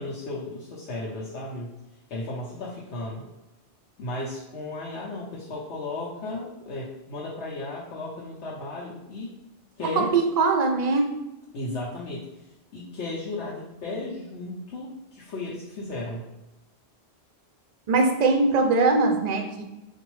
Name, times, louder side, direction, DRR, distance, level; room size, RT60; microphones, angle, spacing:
voice 1, 0.0-1.7 2.1-3.2 4.0-9.4 9.8-10.1 11.5-12.2 12.7-16.3, left 2 dB, 85° left, -6 dB, 1.0 m, -34 dB
voice 2, 9.8-11.2 17.9-19.6, right 3 dB, 55° right, 4 dB, 0.5 m, -22 dB
3.9 x 2.6 x 3.1 m, 0.95 s
omnidirectional pair, 1.1 m